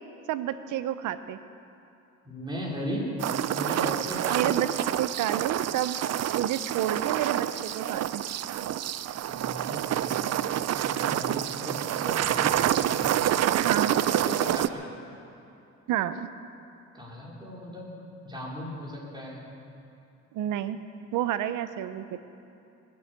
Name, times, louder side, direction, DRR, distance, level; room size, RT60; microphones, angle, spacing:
voice 1, 0.3-1.4 4.3-4.7 5.0-6.0 6.3-8.2 13.6-13.9 15.9-16.3 20.3-20.8 21.1-22.2, right 12 dB, 90° right, 12 dB, 0.8 m, -30 dB
voice 2, 2.2-3.1 3.5-4.5 9.3-13.5 14.2-14.8 16.9-19.4, equal, 15° right, -4 dB, 4.4 m, -37 dB
sound 1, 3.2-14.7, right 11 dB, 60° right, 0.5 m, -27 dB
20.5 x 8.1 x 8.1 m, 2.7 s
cardioid pair, 90°, 30 cm